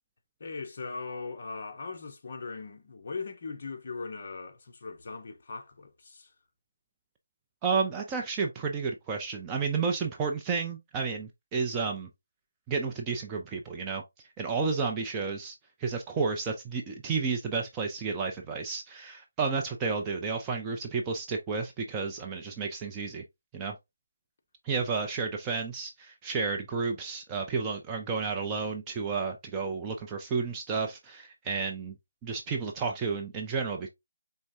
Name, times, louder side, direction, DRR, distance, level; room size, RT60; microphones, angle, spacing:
voice 1, 0.4-6.3, left 4 dB, 40° left, 0.8 m, -39 dB
voice 2, 7.6-12.1 12.7-14.0 14.4-23.2 23.5-23.8 24.6-31.9 32.2-33.9, right 5 dB, 10° right, 0.3 m, -31 dB
4.5 x 3.2 x 2.7 m
figure-of-eight pair, 175°, 0 cm